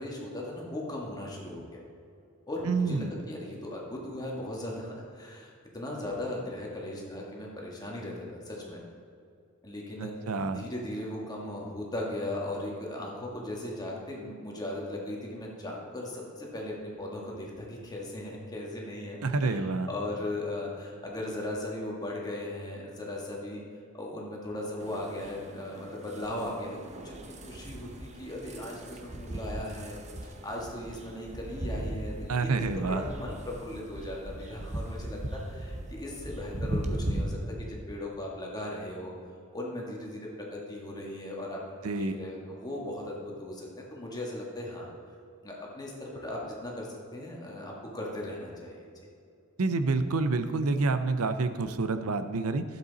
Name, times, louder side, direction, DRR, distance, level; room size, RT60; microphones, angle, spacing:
voice 1, 0.0-1.8 2.5-8.8 9.6-10.1 10.5-23.6 23.9-30.0 30.2-32.5 32.9-39.1 39.5-44.9 45.4-48.9, left 1 dB, 20° left, -3 dB, 1.8 m, -38 dB
voice 2, 2.7-3.1 10.0-10.6 19.2-19.9 32.3-33.0 41.8-42.1 49.6-52.6, right 3 dB, 85° right, 11 dB, 0.7 m, -28 dB
sound 1, 24.8-37.2, right 1 dB, 35° right, 0.8 m, -38 dB
12.0 x 7.8 x 4.1 m, 2.4 s
head